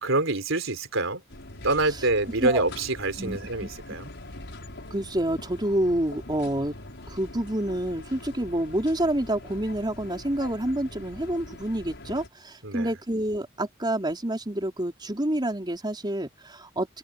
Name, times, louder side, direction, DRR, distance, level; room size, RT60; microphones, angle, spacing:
voice 1, 0.0-1.2 1.6-4.1 12.6-12.9, right 2 dB, 70° right, 4.3 m, -26 dB
sound 1, 1.3-12.3, left 1 dB, 60° left, 6.7 m, -43 dB
voice 2, 3.2-3.7 4.9-6.7 7.1-16.9, right 1 dB, 20° right, 4.2 m, -28 dB
open air
head